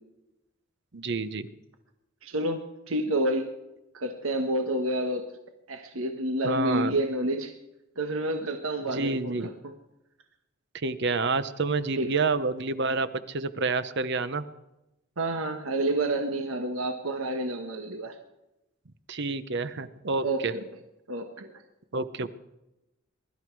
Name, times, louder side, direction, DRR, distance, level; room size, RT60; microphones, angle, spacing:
voice 1, 0.9-1.5 6.4-7.0 8.8-9.5 10.7-14.4 19.1-20.5 21.9-22.3, right 3 dB, 55° right, 13 dB, 0.9 m, -28 dB
voice 2, 2.2-3.5 3.9-5.2 5.7-7.5 8.0-9.7 12.0-12.1 15.2-18.2 20.2-20.6 21.1-21.5, right 1 dB, 80° right, 5 dB, 1.4 m, -29 dB
22.5 x 12.5 x 4.7 m, 0.93 s
head